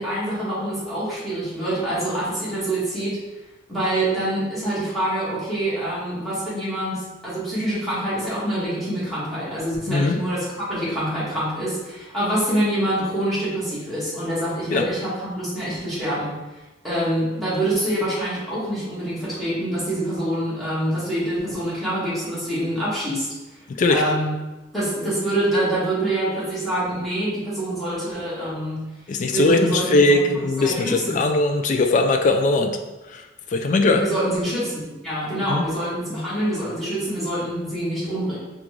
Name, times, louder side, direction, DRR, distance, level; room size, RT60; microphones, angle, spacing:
voice 1, 0.0-3.2 3.7-16.4 16.8-23.3 23.9-24.3 24.7-28.8 29.3-31.2 33.9-38.4, right 1 dB, ahead, -11 dB, 1.4 m, -25 dB
voice 2, 23.7-24.0 29.1-32.8 33.1-33.2 33.5-34.0 35.5-35.6, left 2 dB, 40° left, 5 dB, 0.3 m, -19 dB
3.7 x 2.4 x 3.0 m, 1.1 s
head